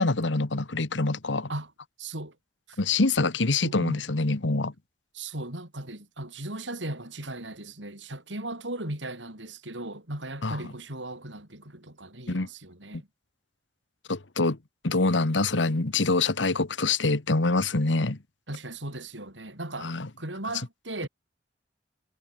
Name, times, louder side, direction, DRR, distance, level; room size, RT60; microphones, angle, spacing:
voice 1, 0.0-1.5 2.8-4.7 10.4-10.6 12.3-12.5 14.1-14.6 14.8-18.2 19.8-20.1, left 3 dB, 85° left, 1.5 m, -25 dB
voice 2, 2.0-2.4 2.7-2.8 3.6-4.0 5.1-13.1 18.5-21.1, right 2 dB, 85° right, 7.5 m, -37 dB
head